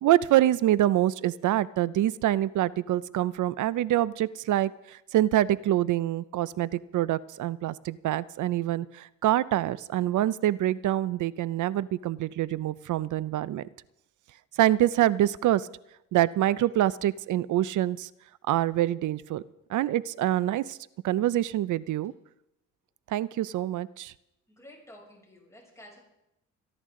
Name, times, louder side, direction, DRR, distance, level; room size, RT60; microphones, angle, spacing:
voice 1, 0.0-13.7 14.6-15.7 16.1-18.1 18.5-19.4 19.7-20.8 21.0-22.1 23.1-24.1, right 13 dB, 70° right, 19 dB, 0.6 m, -25 dB
voice 2, 24.5-26.0, left 1 dB, 10° left, -3 dB, 6.9 m, -51 dB
26.0 x 11.0 x 3.8 m, 0.87 s
cardioid pair, 95°, 31 cm